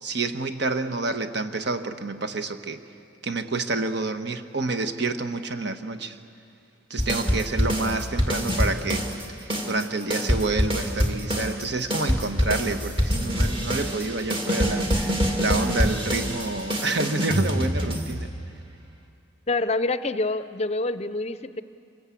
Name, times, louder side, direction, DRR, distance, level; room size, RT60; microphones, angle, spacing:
voice 1, 0.0-2.8 3.2-6.2 6.9-18.3, right 3 dB, 60° right, 8 dB, 1.3 m, -28 dB
sound 1, 7.0-9.2 9.5-18.5, equal, 25° right, 2.4 m, -25 dB
voice 2, 19.5-21.6, left 2 dB, 35° left, 13 dB, 0.6 m, -26 dB
26.5 x 22.0 x 8.4 m, 2.4 s
head